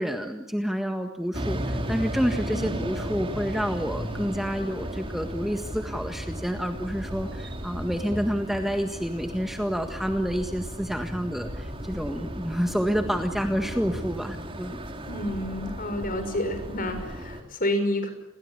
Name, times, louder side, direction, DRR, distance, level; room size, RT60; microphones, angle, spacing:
voice 1, 0.0-14.8, equal, ahead, 6 dB, 1.7 m, -29 dB
sound 1, 1.3-17.4, equal, 25° right, 4.1 m, -35 dB
voice 2, 15.1-18.1, left 1 dB, 45° left, 8 dB, 6.1 m, -29 dB
30.0 x 22.5 x 8.3 m, 0.78 s
head